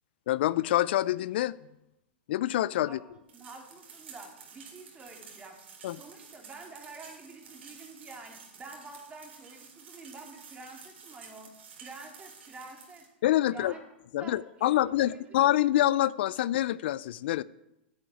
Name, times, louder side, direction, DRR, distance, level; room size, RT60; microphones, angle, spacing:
voice 1, 0.3-1.6 2.3-3.0 5.8-6.0 13.2-13.7 14.1-17.4, left 14 dB, 65° left, 0.4 m, -26 dB
voice 2, 2.8-5.6 6.0-13.0 13.5-13.8 14.2-15.5, right 3 dB, 20° right, 3.3 m, -48 dB
sound 1, 3.3-13.1, right 6 dB, 80° right, 3.7 m, -51 dB
10.5 x 8.6 x 9.1 m
hypercardioid pair, 125°, 6 cm